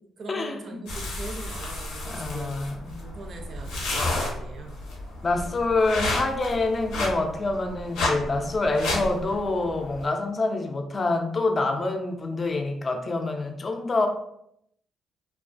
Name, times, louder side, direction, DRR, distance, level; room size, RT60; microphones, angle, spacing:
voice 1, 0.0-2.6 3.0-4.8, right 3 dB, 55° right, 4 dB, 0.3 m, -41 dB
sound 1, 0.9-10.0, left 2 dB, 90° left, 0.6 m, -32 dB
voice 2, 2.0-3.0 5.2-14.1, left 3 dB, 35° left, 4 dB, 0.4 m, -26 dB
2.2 x 2.2 x 2.4 m, 0.74 s
cardioid pair, 90°, 0 cm